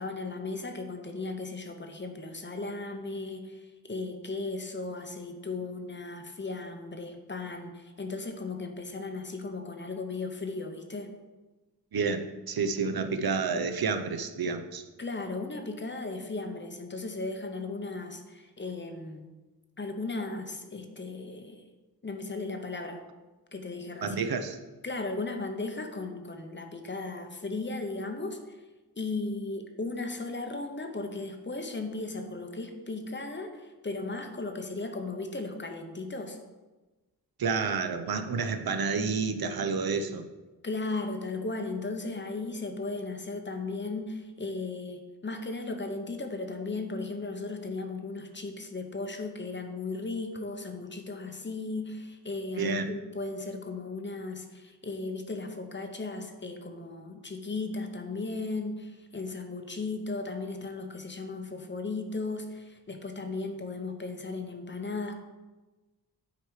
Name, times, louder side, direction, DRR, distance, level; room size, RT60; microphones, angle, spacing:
voice 1, 0.0-11.1 15.0-19.3 19.8-21.6 22.0-23.0 23.5-24.3 24.8-28.6 29.0-36.4 40.6-65.1, left 3 dB, 30° left, 5 dB, 0.7 m, -36 dB
voice 2, 11.9-14.8 24.0-24.6 37.4-40.2 52.6-52.9, right 5 dB, 60° right, 7 dB, 0.7 m, -29 dB
9.5 x 4.8 x 4.7 m, 1.2 s
wide cardioid pair, 155°, 40 cm